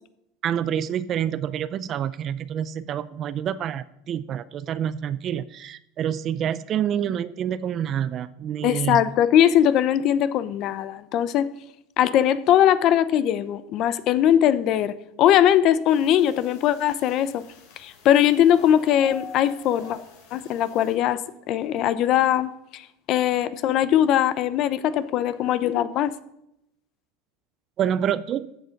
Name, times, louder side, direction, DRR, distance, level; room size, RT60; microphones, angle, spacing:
voice 1, 0.4-9.1 27.8-28.5, right 9 dB, 30° right, 17 dB, 0.4 m, -27 dB
voice 2, 8.6-11.5 12.0-17.4 17.8-20.0 20.3-21.2 21.5-26.1, left 10 dB, 35° left, 15 dB, 0.6 m, -20 dB
sound 1, 15.9-20.9, left 6 dB, 60° left, 3.8 m, -46 dB
13.0 x 8.1 x 5.2 m, 0.81 s
supercardioid pair, 170°, 0 cm